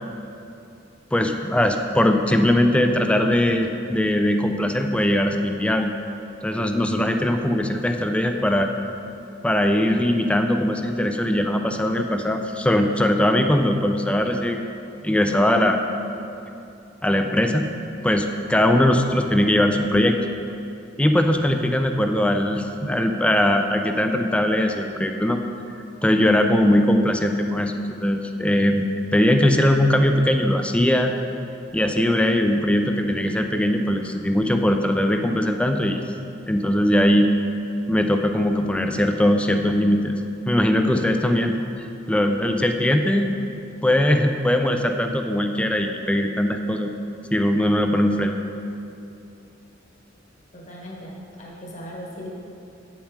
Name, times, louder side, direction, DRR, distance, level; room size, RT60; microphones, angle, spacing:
voice 1, 1.1-5.9 6.4-8.7 9.4-14.6 15.0-15.8 17.0-17.7 18.0-20.2 21.0-25.4 26.0-28.9 29.1-31.1 31.7-36.0 36.5-37.3 37.9-40.1 40.5-43.3 43.8-46.9 47.3-48.4, left 1 dB, 5° left, 5 dB, 0.4 m, -20 dB
voice 2, 50.5-52.3, equal, 40° left, -3 dB, 1.3 m, -38 dB
7.7 x 7.3 x 4.7 m, 2.8 s
head